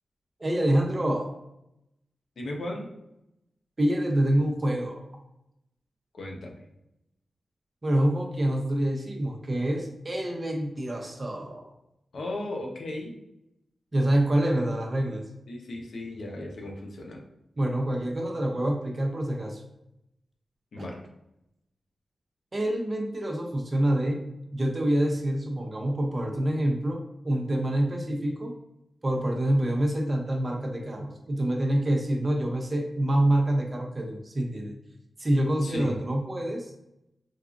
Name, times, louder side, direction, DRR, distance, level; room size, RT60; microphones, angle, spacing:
voice 1, 0.4-1.3 3.8-5.0 7.8-11.7 13.9-15.2 17.6-19.6 20.8-20.9 22.5-24.2 24.5-27.0 27.2-28.5 29.0-34.7 35.2-36.7, right 1 dB, 30° right, 2 dB, 0.6 m, -26 dB
voice 2, 2.4-2.9 6.1-6.6 12.1-13.1 15.5-17.2 20.7-21.0 35.6-35.9, left 1 dB, 70° left, 0 dB, 0.8 m, -36 dB
4.4 x 2.4 x 2.5 m, 0.84 s
wide cardioid pair, 95°, 0 cm